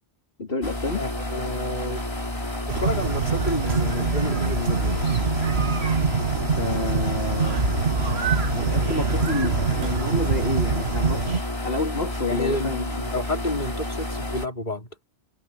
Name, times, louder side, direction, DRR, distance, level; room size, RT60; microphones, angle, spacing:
voice 1, 0.4-1.0 6.6-7.6 8.5-12.9, left 3 dB, 65° left, 2.9 m, -29 dB
sound 1, 0.6-14.5, left 1 dB, 25° left, 3.4 m, -30 dB
voice 2, 0.9-2.1 2.7-5.3 12.3-14.9, left 2 dB, 45° left, 5.1 m, -30 dB
sound 2, 2.7-11.4, right 5 dB, 85° right, 1.9 m, -24 dB
omnidirectional pair, 1.1 m